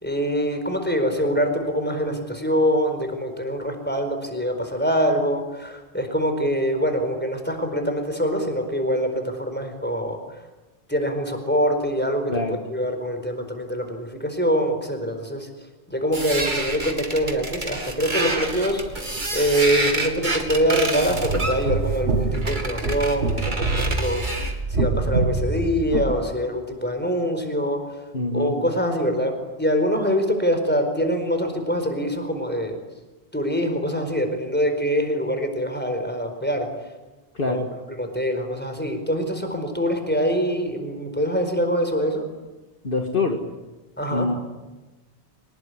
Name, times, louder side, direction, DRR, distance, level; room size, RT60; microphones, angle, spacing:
voice 1, 0.0-10.2 10.9-15.5 15.9-19.0 19.3-27.8 28.3-32.8 33.3-36.7 37.5-37.6 38.0-42.3 44.0-44.3, equal, 10° left, 6 dB, 4.7 m, -24 dB
voice 2, 12.3-12.6 28.1-28.6 37.3-37.7 42.8-43.4 44.1-44.4, left 3 dB, 50° left, 4 dB, 1.9 m, -24 dB
sound 1, 16.1-24.6, right 2 dB, 45° right, 2.7 m, -29 dB
sound 2, 21.1-26.2, right 3 dB, 85° right, 2.6 m, -25 dB
25.0 x 20.0 x 9.9 m, 1.1 s
omnidirectional pair, 1.1 m